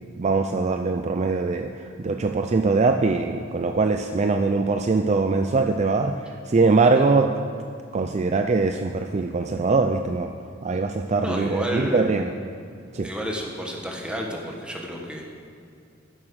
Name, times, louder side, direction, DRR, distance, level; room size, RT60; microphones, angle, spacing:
voice 1, 0.2-7.3 7.9-10.3 10.6-12.3 12.9-13.1, right 3 dB, 35° right, 5 dB, 0.4 m, -22 dB
voice 2, 11.2-12.1 13.0-15.2, equal, 5° right, -1 dB, 1.4 m, -31 dB
11.0 x 7.4 x 6.4 m, 2.4 s
head